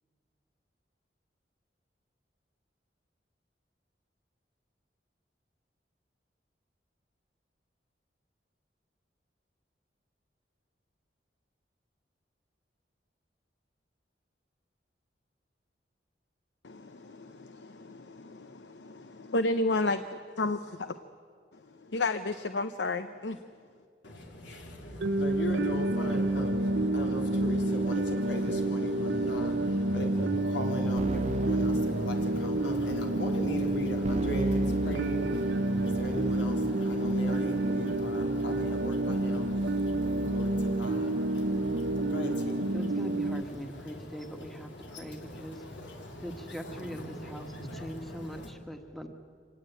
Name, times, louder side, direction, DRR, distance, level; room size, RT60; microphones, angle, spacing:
voice 1, 16.6-21.0 21.5-23.4, left 2 dB, 70° left, 0.8 m, -32 dB
voice 2, 24.0-48.5, left 1 dB, 90° left, 3.6 m, -38 dB
sound 1, 25.0-43.4, right 2 dB, 75° right, 0.8 m, -29 dB
Keyboard (musical), 31.0-32.7 34.0-42.4, right 2 dB, 40° right, 0.9 m, -38 dB
voice 3, 42.7-44.7 45.0-45.6 46.2-47.5 47.7-49.1, equal, ahead, 1.5 m, -41 dB
25.5 x 18.5 x 9.1 m
head